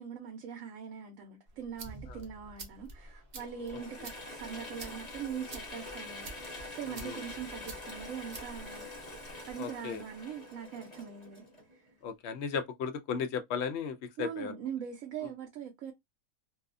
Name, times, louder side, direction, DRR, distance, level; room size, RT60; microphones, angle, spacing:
voice 1, 0.0-6.3 6.7-8.9 9.5-11.4 14.2-15.9, right 8 dB, 75° right, 1.0 m, -41 dB
sound 1, 1.5-9.5, right 2 dB, 45° right, 0.6 m, -50 dB
Mechanisms / Drill, 3.4-12.0, left 2 dB, 35° left, 1.0 m, -45 dB
voice 2, 9.6-10.0 12.0-14.5 15.2-15.3, left 6 dB, 65° left, 0.7 m, -35 dB
2.6 x 2.3 x 2.4 m
omnidirectional pair, 1.4 m